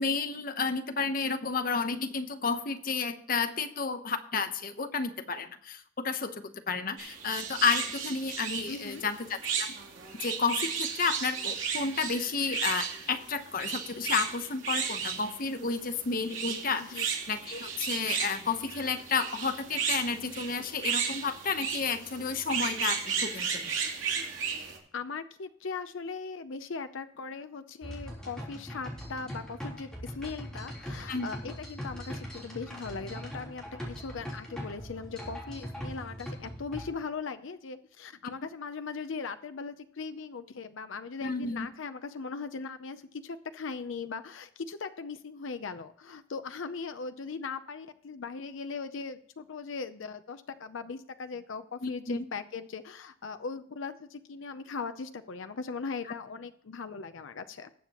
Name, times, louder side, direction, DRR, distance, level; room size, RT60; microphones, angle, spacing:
voice 1, 0.0-9.7 10.2-23.6 31.1-31.3 41.2-41.7 51.8-52.2, left 4 dB, 45° left, 8 dB, 0.9 m, -31 dB
sound 1, 7.0-24.8, right 6 dB, 75° right, 2.8 m, -34 dB
voice 2, 8.7-9.1 16.8-17.1 24.9-57.7, left 4 dB, 80° left, 9 dB, 0.6 m, -39 dB
sound 2, 27.8-36.9, equal, 5° left, 3.5 m, -41 dB
19.5 x 7.4 x 3.0 m, 0.63 s
head